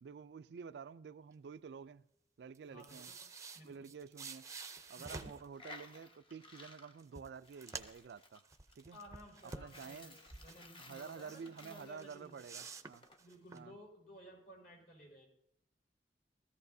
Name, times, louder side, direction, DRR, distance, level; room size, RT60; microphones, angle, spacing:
voice 1, 0.0-2.0 2.4-3.1 3.6-4.5 4.9-8.4 8.8-9.0 9.4-10.2 10.8-13.1 13.5-13.8, right 6 dB, 70° right, 0.3 m, -50 dB
sound 1, 2.5-5.5 6.6-6.7 7.0-8.1 8.4-10.6 11.0-11.7 12.0-13.6, right 4 dB, 20° right, 0.5 m, -49 dB
voice 2, 2.7-3.2 3.5-3.9 5.0-5.3 8.9-12.4 13.2-15.3, equal, 60° left, 5.6 m, -56 dB
Coin (dropping), 5.0-13.2, left 2 dB, 30° left, 0.9 m, -57 dB
17.0 x 14.0 x 2.7 m
head